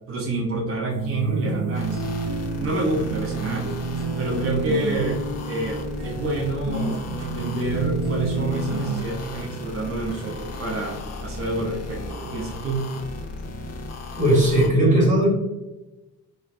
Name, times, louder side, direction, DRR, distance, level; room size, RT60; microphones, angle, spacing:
voice 1, 0.1-2.0 2.6-3.8 4.2-12.9, right 2 dB, 50° right, -2 dB, 0.6 m, -28 dB
sound 1, 0.9-9.0, right 3 dB, 85° right, 0.8 m, -29 dB
sound 2, 1.7-14.7, left 2 dB, 60° left, 0.6 m, -36 dB
voice 2, 14.2-15.3, right 1 dB, 25° right, -4 dB, 1.4 m, -17 dB
3.1 x 2.0 x 2.5 m, 1.0 s
cardioid pair, 90°, 30 cm